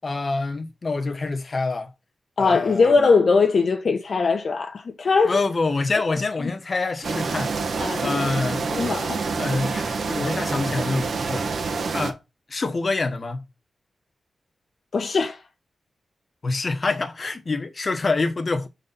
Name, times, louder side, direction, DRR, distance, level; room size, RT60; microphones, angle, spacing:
voice 1, 0.0-1.9 2.4-2.9 5.2-7.5 7.8-8.6 9.4-11.5 11.9-12.2 12.5-13.4 16.4-18.7, left 3 dB, 40° left, 1.2 m, -26 dB
voice 2, 2.4-5.4 7.8-8.3 8.7-9.2 14.9-15.4, left 4 dB, 60° left, 0.9 m, -20 dB
sound 1, 7.0-12.1, right 4 dB, 75° right, 1.5 m, -27 dB
6.5 x 4.2 x 5.5 m
wide cardioid pair, 115°, 0 cm